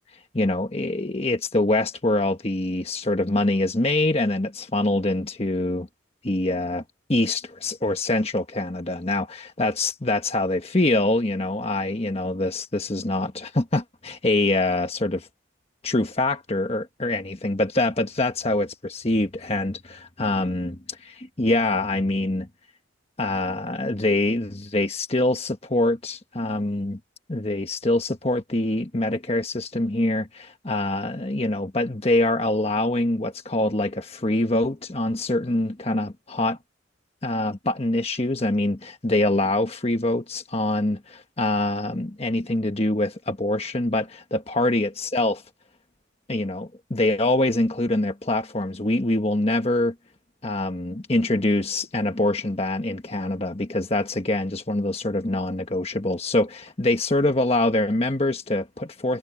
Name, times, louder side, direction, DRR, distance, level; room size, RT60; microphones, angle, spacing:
voice 1, 0.3-5.9 6.2-6.8 7.1-15.3 15.8-22.5 23.2-27.0 27.3-36.6 37.2-45.4 46.3-49.9 50.4-59.2, left 2 dB, 30° left, 1.3 m, -24 dB
head